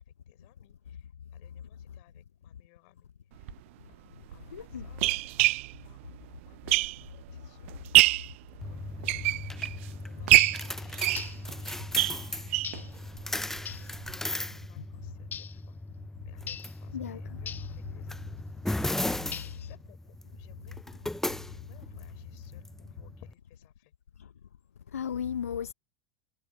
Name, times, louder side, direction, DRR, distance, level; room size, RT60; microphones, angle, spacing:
voice 1, 0.3-3.1 3.4-3.5 3.9-9.4 10.0-12.9 14.5-15.8 16.2-18.3 19.2-20.8 21.5-23.9, left 40 dB or more, 55° left, 6.8 m, -63 dB
sound 1, 3.4-3.5 4.3-7.3 7.7-8.3 8.9-9.8 10.3-12.8 13.2-13.3 13.6-13.7 14.0-14.1, right 20 dB, 55° right, 0.4 m, -25 dB
voice 2, 4.5-4.9 14.8-14.9 16.9-17.4 24.9-25.7, left 8 dB, 75° left, 1.0 m, -35 dB
sound 2, 8.6-23.3, left 1 dB, 5° left, 0.9 m, -37 dB
sound 3, 10.4-10.7 11.1-11.5 12.6-13.0 13.7-13.9 15.3-15.6 16.5-16.8 17.5-17.8 19.3-19.7, left 8 dB, 25° left, 0.4 m, -40 dB
figure-of-eight pair, 80°, 8 cm